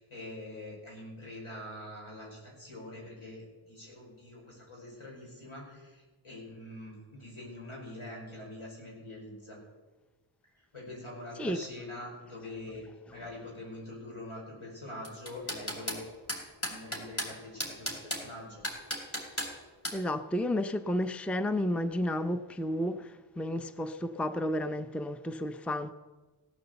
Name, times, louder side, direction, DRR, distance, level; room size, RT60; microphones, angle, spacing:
voice 1, 0.0-9.6 10.5-12.8 13.1-16.0 16.6-18.6, left 1 dB, 75° left, 5.7 m, -44 dB
sound 1, 15.0-16.0 16.3-17.3 17.6-18.2 18.6-19.5 19.8-20.0, equal, 25° left, 3.2 m, -34 dB
voice 2, 19.9-25.9, left 1 dB, 5° left, 0.6 m, -32 dB
16.5 x 9.2 x 7.0 m
wide cardioid pair, 55°, 50 cm